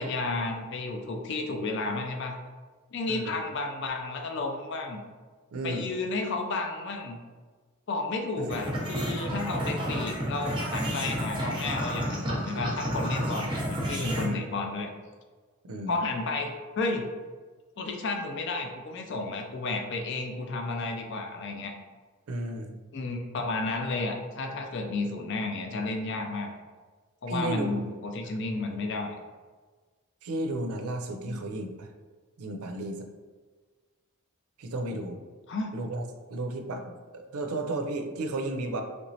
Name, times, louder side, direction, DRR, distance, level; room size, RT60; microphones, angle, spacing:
voice 1, 0.0-2.4 2.9-5.0 5.6-7.2 7.9-14.9 15.9-17.0 17.8-21.7 22.9-26.5 27.2-29.2 31.3-31.6 35.5-35.7, left 3 dB, 55° left, 3 dB, 0.4 m, -32 dB
voice 2, 5.5-5.9 8.4-8.6 14.2-14.4 15.6-15.9 22.3-22.7 27.3-27.8 30.2-31.9 32.4-33.1 34.6-35.2 35.7-36.0 36.3-38.8, right 2 dB, 85° right, 5 dB, 0.4 m, -33 dB
sound 1, 8.5-14.3, equal, 20° right, 0.6 m, -31 dB
3.2 x 3.0 x 2.7 m, 1.4 s
head